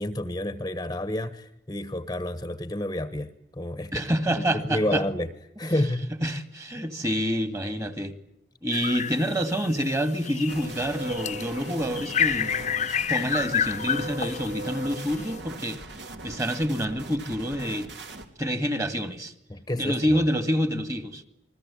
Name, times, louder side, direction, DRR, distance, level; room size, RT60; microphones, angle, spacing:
voice 1, 0.0-5.3 5.6-6.1 6.8-6.9 19.5-20.2, left 1 dB, 20° left, 1.2 m, -30 dB
voice 2, 3.9-5.0 5.6-5.7 6.2-8.1 8.6-12.5 13.1-15.8 16.2-17.9 18.4-19.3 19.8-21.3, equal, 15° right, 2.1 m, -27 dB
sound 1, 8.7-9.8 10.2-15.4, left 8 dB, 40° left, 1.0 m, -29 dB
sound 2, 10.5-18.3, right 1 dB, 70° right, 3.2 m, -39 dB
29.0 x 21.5 x 8.5 m
head